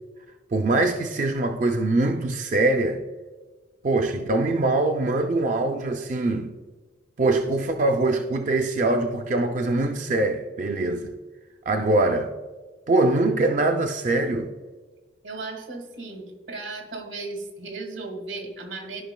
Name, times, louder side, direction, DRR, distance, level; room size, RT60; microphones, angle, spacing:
voice 1, 0.5-3.0 3.8-6.5 7.2-11.1 11.7-12.3 12.9-14.5, right 2 dB, 40° right, 0.4 m, -23 dB
voice 2, 15.2-19.0, right 3 dB, 90° right, 1.6 m, -36 dB
13.0 x 5.4 x 2.2 m
head